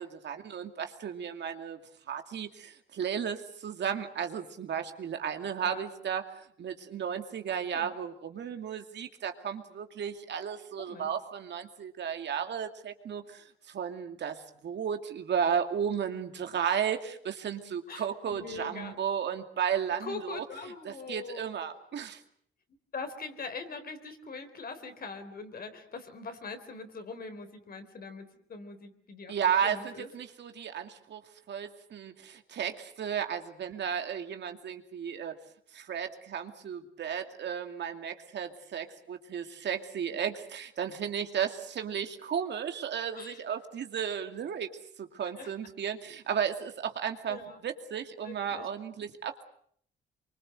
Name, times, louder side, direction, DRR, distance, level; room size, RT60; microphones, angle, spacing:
voice 1, 0.0-1.8 2.1-6.2 6.6-20.4 20.8-22.2 29.3-31.2 31.5-35.3 35.7-44.7 45.0-49.4, right 8 dB, 60° right, 6 dB, 2.4 m, -34 dB
voice 2, 10.8-11.1 17.9-19.0 20.0-21.5 22.9-29.4 29.6-30.1 43.1-43.4 45.4-45.5 47.3-47.6 48.2-48.7, left 4 dB, 50° left, 8 dB, 4.1 m, -42 dB
25.0 x 24.0 x 7.9 m, 0.64 s
cardioid pair, 90°, 20 cm